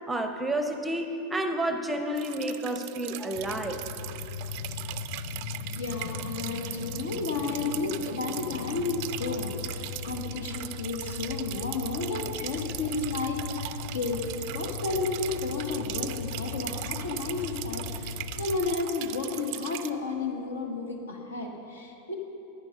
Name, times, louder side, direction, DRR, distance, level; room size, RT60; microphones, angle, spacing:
voice 1, 0.1-3.8, right 1 dB, 10° right, 6 dB, 0.6 m, -30 dB
sound 1, 2.2-19.9, right 16 dB, 45° right, 0.4 m, -39 dB
sound 2, 3.3-18.8, left 7 dB, 50° left, 0.5 m, -39 dB
voice 2, 5.7-14.2 14.5-22.1, left 3 dB, 65° left, 2 dB, 1.2 m, -32 dB
10.5 x 9.7 x 5.2 m, 3.0 s
figure-of-eight pair, 90°, 0 cm